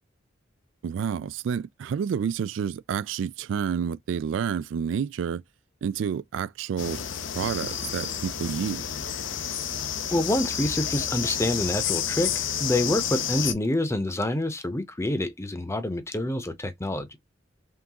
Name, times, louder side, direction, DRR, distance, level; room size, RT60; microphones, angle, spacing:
voice 1, 0.8-5.4 5.8-7.0 7.3-8.9, right 7 dB, 75° right, 0.3 m, -29 dB
sound 1, 6.8-13.5, left 9 dB, 85° left, 0.7 m, -30 dB
voice 2, 10.1-17.2, left 1 dB, 15° left, 0.7 m, -27 dB
3.8 x 3.4 x 2.8 m
head